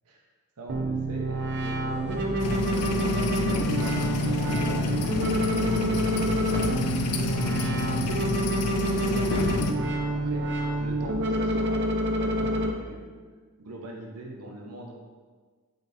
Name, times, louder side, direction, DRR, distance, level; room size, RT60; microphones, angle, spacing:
voice 1, 0.6-2.9 3.4-6.1 6.7-9.5 10.1-13.2 13.6-14.9, right 1 dB, 90° right, 1 dB, 0.7 m, -42 dB
sound 1, 0.7-12.7, right 1 dB, 55° right, 0.5 m, -28 dB
sound 2, 1.9-12.1, left 1 dB, 35° right, 1.1 m, -47 dB
Soda Machine Noise, 2.4-9.7, left 3 dB, 80° left, 0.4 m, -28 dB
5.1 x 3.9 x 2.6 m, 1.5 s
head